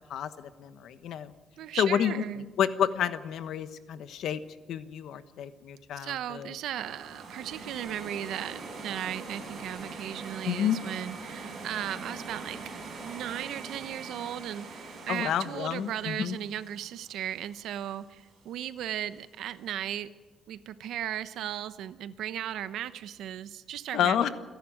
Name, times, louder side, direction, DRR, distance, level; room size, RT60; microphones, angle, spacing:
voice 1, 0.1-1.3 1.8-2.2 2.6-4.4 4.7-6.5 10.4-10.8 15.1-16.4 23.9-24.3, left 9 dB, 75° left, 12 dB, 1.2 m, -29 dB
voice 2, 1.6-2.5 5.9-12.6 13.0-20.1 20.5-24.3, right 11 dB, 90° right, 13 dB, 0.9 m, -36 dB
sound 1, 6.7-17.7, right 3 dB, 50° right, 7.2 m, -43 dB
28.0 x 11.0 x 9.0 m, 1.3 s
cardioid pair, 165°, 0 cm